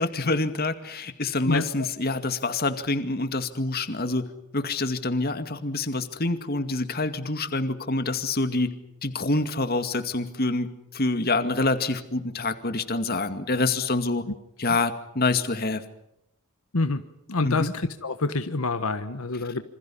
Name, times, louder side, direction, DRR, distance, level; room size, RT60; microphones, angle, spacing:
voice 1, 0.0-8.7 9.0-14.2 14.6-15.8 17.4-17.7, left 2 dB, 45° left, 9 dB, 2.2 m, -26 dB
voice 2, 1.5-1.9 14.6-14.8 16.7-17.0 17.3-19.6, left 3 dB, 75° left, 9 dB, 1.4 m, -27 dB
28.0 x 26.5 x 5.7 m, 0.81 s
head